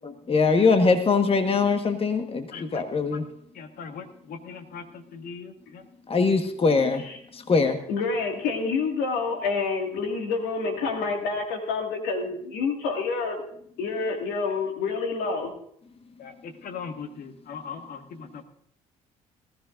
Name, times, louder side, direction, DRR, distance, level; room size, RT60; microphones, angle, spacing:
voice 1, 0.0-3.2 6.1-7.0 7.3-7.8, left 4 dB, 35° left, 6 dB, 1.4 m, -22 dB
voice 2, 2.5-2.8 3.1-3.2 3.6-4.8 5.1-5.8 16.2-18.3, left 6 dB, 60° left, 6 dB, 1.6 m, -39 dB
voice 3, 7.9-13.4 13.8-15.5, left 4 dB, 75° left, 3 dB, 2.1 m, -28 dB
19.5 x 14.0 x 2.6 m, 0.67 s
hypercardioid pair, 50°, 17 cm